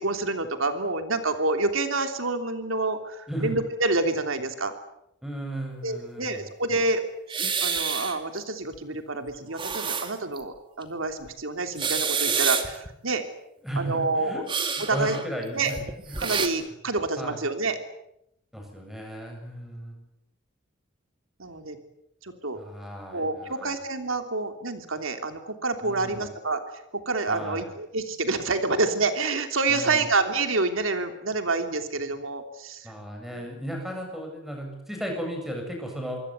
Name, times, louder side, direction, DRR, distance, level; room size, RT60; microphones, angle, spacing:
voice 1, 0.0-4.7 5.8-7.0 7.6-13.2 13.8-14.4 14.8-15.2 15.5-15.7 16.2-17.8 21.4-21.8 22.2-22.6 23.1-26.6 27.0-32.9 33.3-33.5, right 3 dB, 90° right, 6 dB, 3.2 m, -28 dB
voice 2, 5.2-6.4 13.6-14.4 14.8-16.2 17.2-17.4 18.5-20.0 22.5-23.8 25.8-26.3 27.3-27.7 29.7-30.1 32.8-36.2, right 1 dB, ahead, 2 dB, 7.8 m, -35 dB
sound 1, 7.3-8.4 8.7-8.8 9.3-10.4 10.8-10.9 11.6-12.9 14.5-16.5, right 6 dB, 25° right, 2.5 m, -28 dB
26.0 x 24.0 x 8.2 m, 0.81 s
head